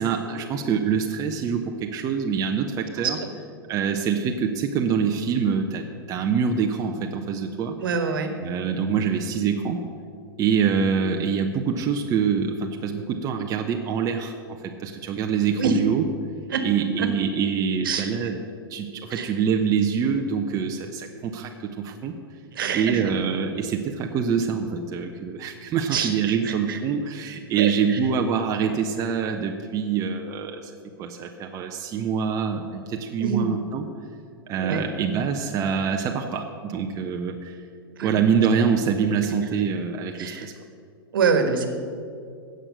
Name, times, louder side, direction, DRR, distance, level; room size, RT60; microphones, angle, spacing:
voice 1, 0.0-3.2 3.7-7.8 8.4-9.8 10.4-16.0 16.6-18.4 18.7-22.2 22.7-30.7 31.0-33.9 34.5-37.6 38.0-40.5, right 6 dB, 25° right, 3 dB, 0.8 m, -25 dB
voice 2, 7.8-8.3 15.6-15.8 16.5-16.6 17.0-17.1 17.8-18.1 19.1-19.3 22.5-23.0 25.9-26.1 26.4-26.8 27.6-27.7 33.2-33.5 34.6-34.9 38.0-38.1 40.2-40.5 41.1-41.7, right 5 dB, 60° right, 7 dB, 1.5 m, -25 dB
16.0 x 6.5 x 6.6 m, 2.3 s
figure-of-eight pair, 100°, 13 cm